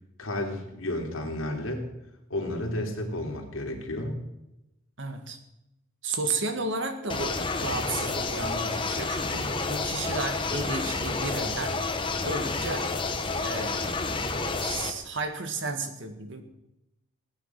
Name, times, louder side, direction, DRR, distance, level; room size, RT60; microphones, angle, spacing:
voice 1, 0.2-1.9 2.3-4.1, left 1 dB, 75° left, 1 dB, 3.1 m, -32 dB
voice 2, 5.0-5.4 6.0-11.7 12.2-12.9 13.4-13.9 14.6-16.4, right 3 dB, 60° right, 7 dB, 1.8 m, -33 dB
sound 1, 7.1-14.9, left 3 dB, 25° left, 1.1 m, -30 dB
17.5 x 9.8 x 5.9 m, 0.90 s
head